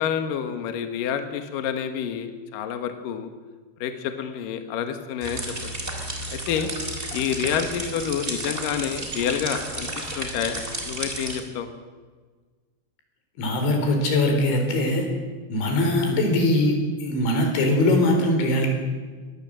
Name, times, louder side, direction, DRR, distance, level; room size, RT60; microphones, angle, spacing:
voice 1, 0.0-3.3 3.8-5.4 6.3-6.7 7.1-9.9 10.2-11.7, left 8 dB, 60° left, 7 dB, 2.6 m, -28 dB
sound 1, 5.2-11.4, right 1 dB, 15° right, 2.9 m, -32 dB
voice 2, 13.4-15.1 15.5-18.7, left 1 dB, 85° left, 4 dB, 6.4 m, -21 dB
22.0 x 18.5 x 7.6 m, 1.4 s
omnidirectional pair, 5.2 m